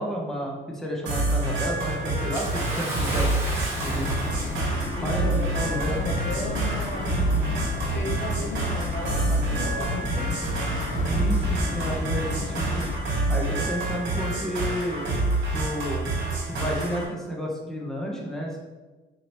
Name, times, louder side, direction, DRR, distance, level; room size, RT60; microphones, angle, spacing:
voice 1, 0.0-3.3 3.8-4.3 5.0-5.9 7.3-7.6 11.0-12.9 13.3-15.0 15.5-16.1 16.5-18.6, equal, ahead, -2 dB, 0.9 m, -31 dB
sound 1, 1.1-17.1, right 2 dB, 70° right, 1.4 m, -27 dB
Bathtub (filling or washing) / Splash splatter, 2.3-4.9 5.9-6.0 7.0-7.1, right 1 dB, 15° right, 1.4 m, -34 dB
sound 2, 3.7-13.0, left 3 dB, 40° left, 0.8 m, -32 dB
voice 2, 5.0-10.9 11.4-11.5, left 2 dB, 70° left, 0 dB, 0.9 m, -35 dB
4.8 x 2.9 x 3.0 m, 1.2 s
cardioid pair, 90°, 20 cm